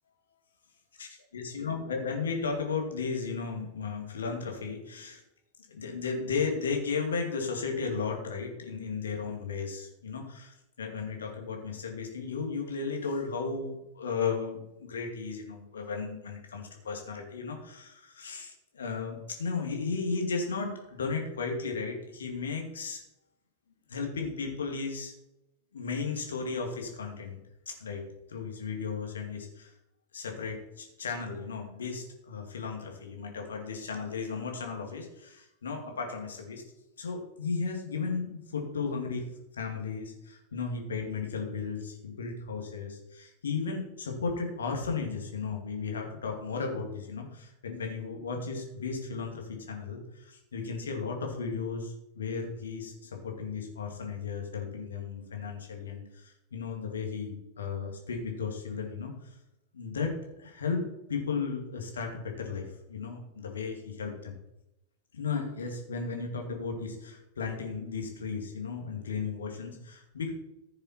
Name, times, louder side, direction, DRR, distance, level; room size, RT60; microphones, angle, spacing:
voice 1, 1.3-5.2 5.7-23.0 23.9-25.1 25.7-27.4 27.7-28.0 28.3-29.7 30.1-36.6 37.0-59.3 59.7-60.8 61.1-64.3 65.1-70.3, left 5 dB, 70° left, 2 dB, 2.5 m, -35 dB
15.0 x 6.8 x 4.5 m, 0.88 s
figure-of-eight pair, 90°, 0 cm